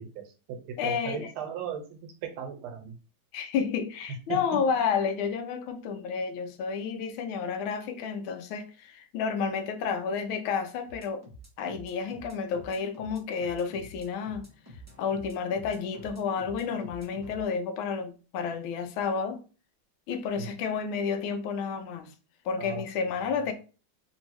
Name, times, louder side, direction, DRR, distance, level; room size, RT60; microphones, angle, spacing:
voice 1, 0.0-3.0 4.3-4.4 20.4-20.5 22.6-23.4, right 7 dB, 90° right, 1.5 m, -38 dB
voice 2, 0.8-1.3 3.3-11.2 11.6-14.5 15.0-19.4 20.1-22.1 22.4-23.5, left 6 dB, 80° left, 1.4 m, -31 dB
sound 1, 10.9-17.4, right 1 dB, 20° right, 0.4 m, -49 dB
3.5 x 2.6 x 3.0 m
omnidirectional pair, 2.3 m